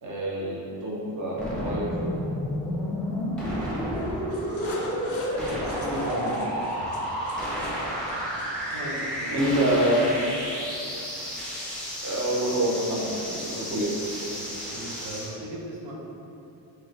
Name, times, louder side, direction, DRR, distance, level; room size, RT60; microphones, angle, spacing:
voice 1, 0.0-2.0 4.6-6.5 9.3-10.0 12.0-14.0, right 1 dB, 40° right, -5 dB, 0.7 m, -28 dB
sound 1, 1.4-15.3, equal, ahead, 0.7 m, -31 dB
sound 2, 3.9-9.1, left 2 dB, 35° left, 0.4 m, -44 dB
voice 2, 8.7-9.4 14.3-15.9, right 1 dB, 80° right, -4 dB, 0.8 m, -38 dB
3.0 x 3.0 x 2.5 m, 2.8 s
cardioid pair, 90°, 45 cm